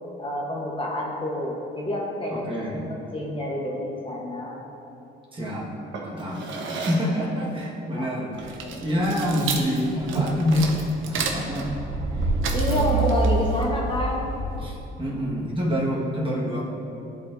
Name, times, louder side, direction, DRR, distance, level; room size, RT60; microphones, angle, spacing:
voice 1, 0.2-2.8 3.1-4.6 6.3-6.9 8.0-8.1 8.6-8.8 12.5-14.3, left 1 dB, 25° left, -2 dB, 1.0 m, -28 dB
voice 2, 2.3-2.9 5.3-5.7 6.0-10.7 11.1-11.7 12.2-12.3 12.7-13.0 14.6-16.6, equal, 25° right, -4 dB, 1.4 m, -27 dB
Drawer open or close, 5.9-7.2 8.4-8.6 9.0-10.5, right 3 dB, 70° right, 1.1 m, -32 dB
sound 1, 8.3-14.9, right 3 dB, 85° right, 0.7 m, -27 dB
11.5 x 4.2 x 2.6 m, 2.8 s
cardioid pair, 90°, 20 cm